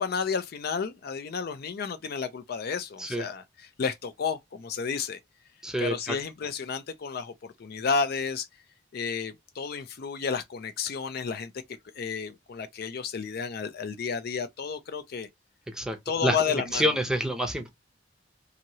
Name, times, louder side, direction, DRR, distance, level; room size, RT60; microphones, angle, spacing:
voice 1, 0.0-5.2 5.8-8.5 8.9-11.5 12.0-15.3 16.1-16.9, left 5 dB, 55° left, 0.4 m, -31 dB
voice 2, 5.6-6.2 15.7-17.7, equal, 5° right, 0.6 m, -28 dB
2.9 x 2.7 x 2.7 m
head